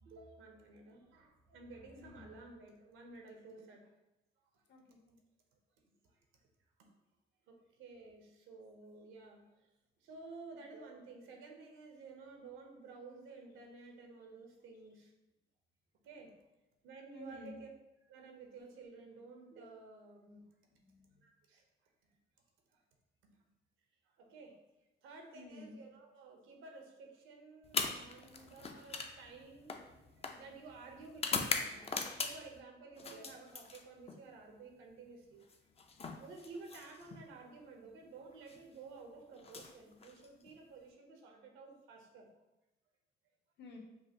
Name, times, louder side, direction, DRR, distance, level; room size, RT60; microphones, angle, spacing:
voice 1, 0.0-3.9 4.4-4.5 6.0-6.1 6.8-6.9 7.5-9.7 10.0-15.1 16.0-16.3 16.8-17.7 18.0-20.5 21.2-21.6 22.7-22.8 24.0-24.6 25.0-35.5 36.2-42.3, right 3 dB, 85° right, 2 dB, 0.8 m, -53 dB
voice 2, 2.0-2.3 4.7-5.2 17.1-17.6 20.8-21.2 25.3-25.8 43.6-43.8, left 2 dB, 65° left, -1 dB, 1.0 m, -52 dB
sound 1, 27.6-32.6 33.0-34.2 35.4-37.2 38.3-38.6 39.4-40.5, left 4 dB, 30° left, 0.4 m, -41 dB
5.4 x 2.5 x 2.8 m, 0.95 s
cardioid pair, 90°, 20 cm